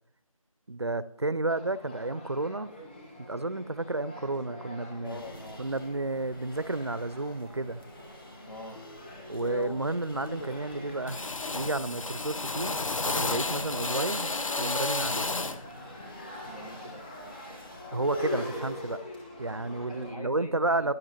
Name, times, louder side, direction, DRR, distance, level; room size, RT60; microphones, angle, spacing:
voice 1, 0.7-2.7 3.2-5.2 5.6-7.8 9.3-11.2 11.5-12.8 13.2-14.3 14.6-15.3 17.9-19.0 19.4-20.9, right 2 dB, 50° right, 16 dB, 0.4 m, -31 dB
sound 1, 1.5-20.1, left 1 dB, 15° left, 1.7 m, -44 dB
voice 2, 5.0-5.6 8.5-8.8 16.5-17.1 19.9-20.9, left 2 dB, 90° left, 3 dB, 1.7 m, -44 dB
sound 2, 5.0-19.0, left 1 dB, 40° left, 1.5 m, -50 dB
Drill, 8.8-9.0 9.4-9.9 10.2-10.7 11.1-15.7, left 3 dB, 65° left, 0.6 m, -32 dB
10.5 x 7.5 x 3.0 m, 0.74 s
figure-of-eight pair, 175°, 18 cm